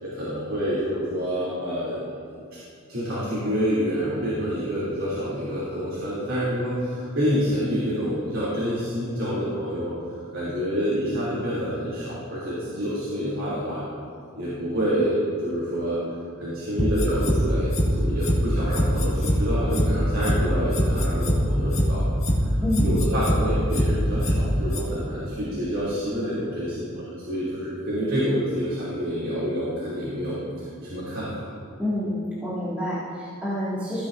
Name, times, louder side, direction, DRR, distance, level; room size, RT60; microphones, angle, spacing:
voice 1, 0.0-2.1 2.9-9.9 10.3-13.9 14.4-16.0 16.4-22.0 22.4-30.4 30.8-31.5, equal, 70° right, -10 dB, 3.0 m, -27 dB
sound 1, 16.8-17.4 17.7-17.9 18.2-18.4 18.7-19.4 19.7-19.9 20.2-20.4 20.7-21.4 21.7-21.9 22.2-22.4 22.7-23.4 23.7-23.9 24.2-24.4 24.7-24.8, equal, 35° left, 2.0 m, -22 dB
voice 2, 22.6-23.0 31.8-34.1, left 1 dB, 5° right, -12 dB, 2.2 m, -28 dB
16.0 x 10.0 x 2.7 m, 2.3 s
head